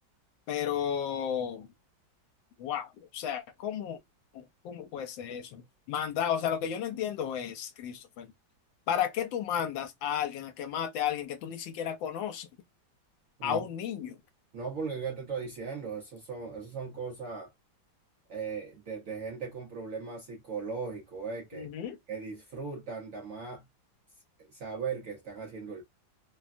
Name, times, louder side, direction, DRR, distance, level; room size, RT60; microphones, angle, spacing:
voice 1, 0.5-1.7 2.6-4.0 4.3-8.3 8.9-12.5 13.4-14.2 21.5-22.0, left 9 dB, 80° left, 1.3 m, -33 dB
voice 2, 14.5-17.5 18.3-21.7 22.1-23.6 24.5-25.8, right 5 dB, 65° right, 0.8 m, -38 dB
3.2 x 2.2 x 2.4 m
omnidirectional pair, 2.1 m